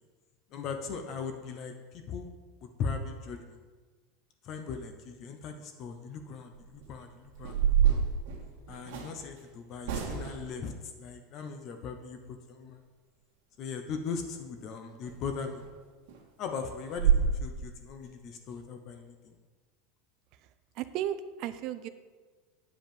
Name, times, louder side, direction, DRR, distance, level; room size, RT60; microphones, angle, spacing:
voice 1, 0.5-2.3 2.6-3.6 4.4-8.0 8.7-10.7 11.0-12.8 13.6-15.6 16.4-19.3, left 5 dB, 35° left, 6 dB, 0.8 m, -39 dB
sound 1, 6.5-6.8 7.4-9.1 9.8-10.5 15.0-15.2 15.6-15.7 16.1-16.2 16.6-16.7 17.0-17.3, right 8 dB, 65° right, 1.9 m, -26 dB
voice 2, 20.8-21.9, right 11 dB, 45° right, 12 dB, 0.5 m, -34 dB
9.6 x 5.4 x 7.0 m, 1.4 s
supercardioid pair, 165°, 0 cm